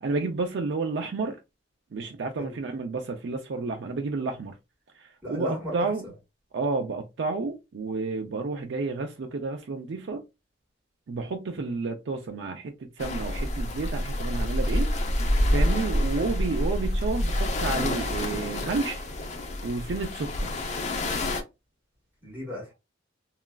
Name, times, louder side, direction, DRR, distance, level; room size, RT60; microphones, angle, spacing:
voice 1, 0.0-1.4 1.9-4.5 5.0-6.0 6.5-10.2 11.1-14.9 15.5-19.0 19.6-20.6, right 3 dB, 65° right, 0.4 m, -31 dB
voice 2, 5.2-5.9 11.5-11.8 16.1-16.3 22.2-22.7, left 1 dB, 10° right, 1.7 m, -36 dB
sound 1, 13.0-21.4, left 1 dB, 40° left, 0.5 m, -27 dB
3.0 x 2.4 x 2.3 m
head